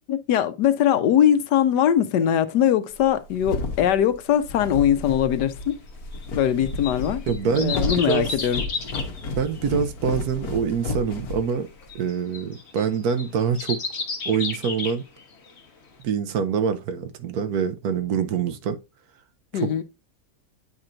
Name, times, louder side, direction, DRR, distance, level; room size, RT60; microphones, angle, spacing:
voice 1, 0.1-5.8 6.3-8.6 19.5-19.8, left 10 dB, 85° left, 1.3 m, -21 dB
sound 1, 3.0-11.9, left 2 dB, 65° left, 1.5 m, -32 dB
sound 2, 5.6-15.6 16.0-16.1, left 4 dB, 45° left, 1.3 m, -34 dB
voice 2, 7.3-7.7 8.1-8.3 9.4-11.7 11.9-13.8 14.3-15.0 16.0-18.8 19.6-19.8, right 7 dB, 70° right, 1.2 m, -25 dB
9.6 x 4.4 x 2.5 m
omnidirectional pair, 1.8 m